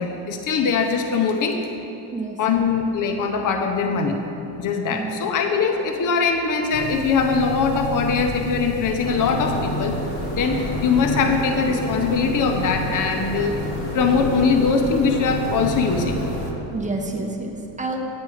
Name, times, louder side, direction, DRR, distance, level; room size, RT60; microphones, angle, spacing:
voice 1, 0.0-1.6 2.4-4.2 4.6-10.0 10.3-16.2, left 5 dB, 40° left, 4 dB, 0.7 m, -22 dB
voice 2, 4.9-5.3 16.7-18.0, right 3 dB, 15° right, 1 dB, 0.9 m, -29 dB
sound 1, 6.7-16.5, left 3 dB, 80° left, 1.1 m, -31 dB
sound 2, 9.0-16.5, equal, 15° left, 2.4 m, -31 dB
9.4 x 8.0 x 4.9 m, 3.0 s
cardioid pair, 145°, 48 cm